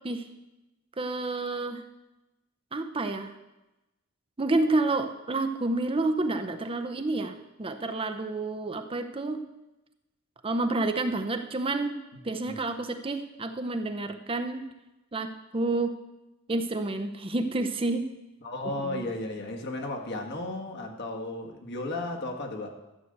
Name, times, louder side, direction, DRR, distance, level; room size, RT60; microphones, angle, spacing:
voice 1, 1.0-1.8 2.7-3.3 4.4-9.4 10.4-12.0 12.2-14.7 15.1-15.9 16.5-18.1 18.6-19.1, right 2 dB, 25° right, 7 dB, 0.7 m, -29 dB
voice 2, 18.4-22.7, left 2 dB, 55° left, 2 dB, 1.8 m, -34 dB
12.5 x 6.7 x 8.0 m, 1.0 s
head